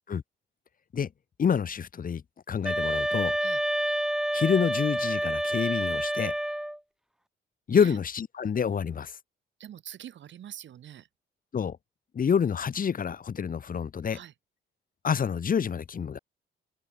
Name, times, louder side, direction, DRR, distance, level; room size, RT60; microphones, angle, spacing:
voice 1, 1.4-2.2 2.5-3.4 4.3-6.3 7.7-9.1 11.5-11.8 12.1-14.2 15.0-16.2, left 7 dB, 45° left, 1.8 m, -27 dB
sound 1, 2.6-6.8, equal, 5° right, 1.2 m, -28 dB
voice 2, 9.6-11.1 14.1-14.3, right 10 dB, 70° right, 6.2 m, -44 dB
open air
cardioid pair, 90°, 20 cm